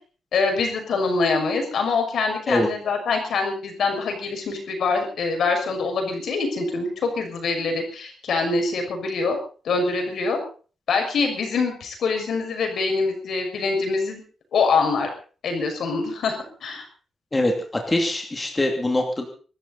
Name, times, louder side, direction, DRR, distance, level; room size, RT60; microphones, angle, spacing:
voice 1, 0.3-9.4 9.6-10.4 10.9-14.2 14.5-15.1 15.4-16.8, left 4 dB, 70° left, 4 dB, 6.1 m, -24 dB
voice 2, 17.9-19.3, left 1 dB, 15° left, 2 dB, 2.7 m, -22 dB
24.0 x 13.5 x 4.2 m, 0.40 s
wide cardioid pair, 160°, 0 cm